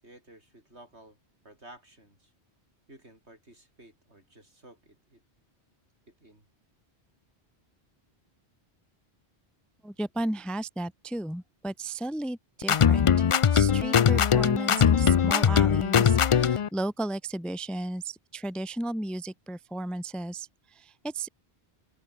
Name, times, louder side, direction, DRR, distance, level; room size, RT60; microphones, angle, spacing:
voice 1, 0.0-1.2 1.4-2.3 2.9-5.2 6.1-6.5, right 1 dB, 85° right, 8.3 m, -53 dB
voice 2, 9.8-21.3, right 1 dB, ahead, 0.5 m, -34 dB
sound 1, 12.6-16.7, left 8 dB, 55° left, 0.3 m, -21 dB
open air
omnidirectional pair, 1.1 m